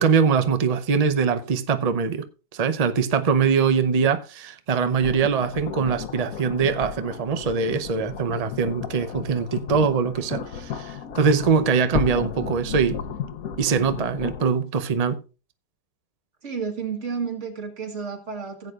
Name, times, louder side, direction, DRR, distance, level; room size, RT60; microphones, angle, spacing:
voice 1, 0.0-2.3 2.5-13.0 13.6-15.2, right 6 dB, 75° right, 0.3 m, -22 dB
sound 1, 5.0-14.4, left 7 dB, 60° left, 1.2 m, -34 dB
voice 2, 16.4-18.7, right 5 dB, 45° right, 1.9 m, -31 dB
16.0 x 8.3 x 2.4 m
omnidirectional pair, 1.9 m